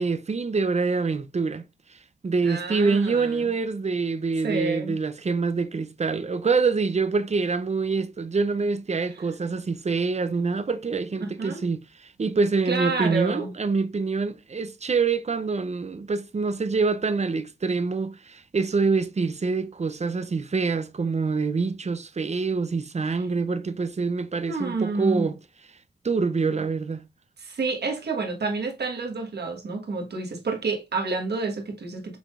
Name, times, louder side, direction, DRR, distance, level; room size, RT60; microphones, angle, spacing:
voice 1, 0.0-1.6 1.9-2.0 2.2-25.4 26.0-27.0, right 4 dB, 40° right, 0.6 m, -25 dB
voice 2, 2.4-3.5 4.4-5.0 11.2-11.6 12.7-13.5 23.1-23.3 24.4-25.3 27.4-32.2, right 3 dB, 65° right, 1.5 m, -29 dB
5.9 x 3.6 x 2.5 m
cardioid pair, 50°, 18 cm